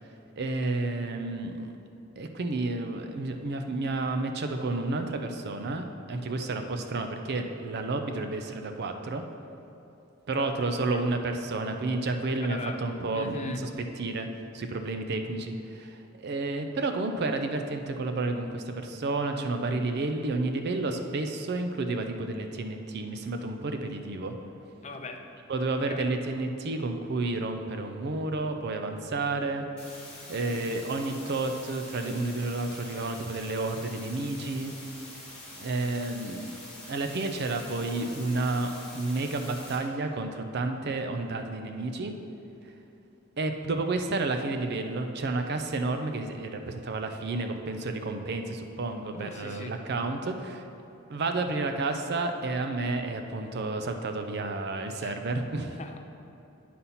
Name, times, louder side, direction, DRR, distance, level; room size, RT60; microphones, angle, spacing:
voice 1, 0.4-1.7 2.2-9.2 10.3-13.7 14.0-14.3 14.5-24.3 25.5-29.7 30.3-34.7 35.6-36.5 36.9-42.1 43.4-50.6 51.1-55.8, right 2 dB, 55° right, 6 dB, 0.5 m, -31 dB
voice 2, 12.5-12.8 13.1-13.6 24.8-25.2 25.9-26.1 30.5-30.7 49.1-49.7 55.0-55.2 55.8-56.0, left 3 dB, 35° left, 4 dB, 0.5 m, -40 dB
sound 1, 29.8-39.8, left 1 dB, 5° left, 1.7 m, -45 dB
9.4 x 4.2 x 5.6 m, 2.8 s
head